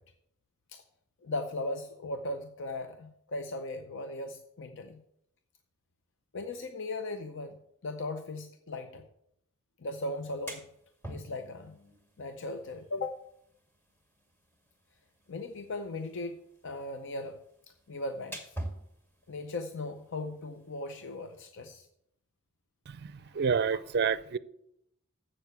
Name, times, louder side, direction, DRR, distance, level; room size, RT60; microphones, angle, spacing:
voice 1, 1.2-5.0 6.3-9.0 9.8-10.7 11.1-11.8 12.2-13.3 15.3-16.4 16.6-17.4 17.9-18.6 19.3-21.9 23.2-23.4 23.7-23.8, left 2 dB, 60° left, 0.7 m, -38 dB
sound 1, 10.1-21.4, right 1 dB, 10° left, 1.9 m, -48 dB
voice 2, 22.9-24.4, right 6 dB, 50° right, 0.5 m, -29 dB
7.7 x 6.7 x 8.0 m
head